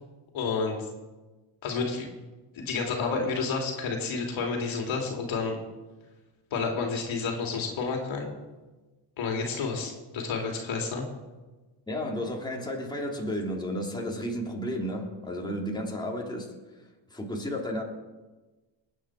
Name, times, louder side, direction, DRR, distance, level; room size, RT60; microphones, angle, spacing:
voice 1, 0.3-0.8 1.6-2.1 2.5-5.6 6.5-8.3 9.2-11.0, left 4 dB, 70° left, 1 dB, 3.0 m, -30 dB
voice 2, 11.9-16.5 17.1-17.8, equal, 10° left, -2 dB, 3.1 m, -32 dB
20.5 x 9.0 x 4.9 m, 1.2 s
cardioid pair, 80°, 49 cm